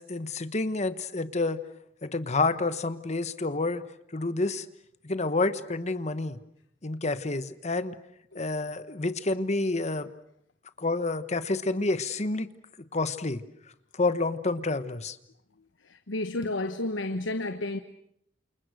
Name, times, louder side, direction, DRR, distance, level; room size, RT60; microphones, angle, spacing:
voice 1, 0.0-1.6 2.0-3.8 4.1-4.7 5.0-6.4 6.8-8.0 8.3-10.1 10.8-12.5 12.9-13.4 13.9-15.2, left 3 dB, 35° left, 1.2 m, -29 dB
voice 2, 15.9-17.8, left 2 dB, 85° left, 1.1 m, -31 dB
29.0 x 28.5 x 6.4 m
head